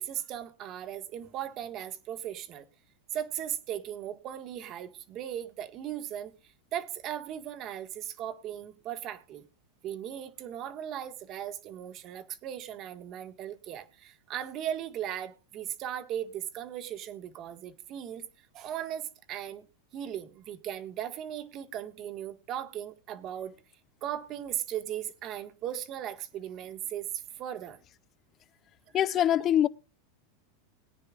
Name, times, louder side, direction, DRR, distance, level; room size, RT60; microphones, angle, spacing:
voice 1, 0.0-2.7 3.1-6.3 6.7-9.5 9.8-18.2 18.5-19.7 19.9-23.5 24.0-27.8 28.9-29.0, right 10 dB, 40° right, 1.6 m, -37 dB
voice 2, 28.9-29.7, left 11 dB, 30° left, 0.6 m, -23 dB
21.5 x 9.8 x 2.4 m
supercardioid pair, 135°, 0 cm